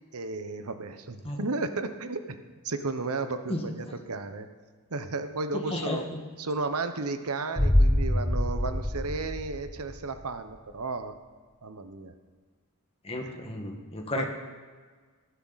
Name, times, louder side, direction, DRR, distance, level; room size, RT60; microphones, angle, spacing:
voice 1, 0.1-2.4 2.6-4.5 4.9-6.0 6.4-11.1 11.6-12.1 13.2-13.4 14.1-14.2, right 3 dB, 85° right, 9 dB, 1.0 m, -33 dB
voice 2, 3.5-4.0 5.5-6.2 13.0-14.3, left 1 dB, 25° left, 2 dB, 1.5 m, -33 dB
sound 1, 7.6-10.3 10.6-10.7, left 1 dB, 10° left, 0.5 m, -25 dB
19.0 x 10.0 x 4.1 m, 1.5 s
head